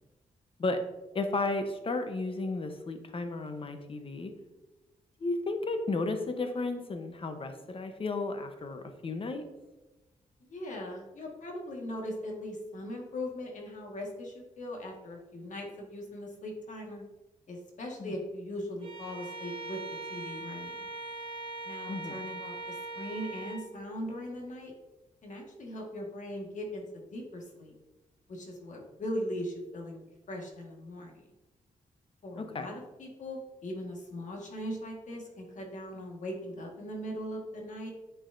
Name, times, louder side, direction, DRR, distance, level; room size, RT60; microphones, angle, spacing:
voice 1, 1.1-4.3 5.2-9.4 18.0-18.1 21.9-22.2 32.4-32.7, left 3 dB, 40° left, 6 dB, 0.9 m, -33 dB
voice 2, 10.4-17.0 17.5-19.8 20.1-20.9 21.6-24.7 25.2-27.8 28.3-31.2 32.2-37.9, equal, 65° left, 0 dB, 1.6 m, -40 dB
Bowed string instrument, 18.8-23.7, right 3 dB, 40° right, 1.3 m, -41 dB
9.0 x 4.9 x 2.6 m, 1.1 s
cardioid pair, 100°, 14 cm